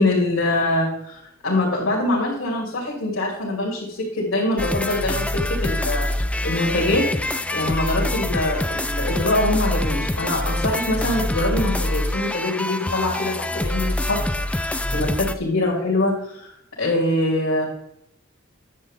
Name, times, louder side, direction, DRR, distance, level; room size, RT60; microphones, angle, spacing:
voice 1, 0.0-6.1 6.4-7.1 7.5-14.2 14.5-16.5 16.8-17.6, left 1 dB, 80° left, -6 dB, 2.8 m, -23 dB
sound 1, 4.6-15.3, left 1 dB, 5° left, 0.3 m, -25 dB
10.5 x 7.5 x 3.7 m, 0.77 s
head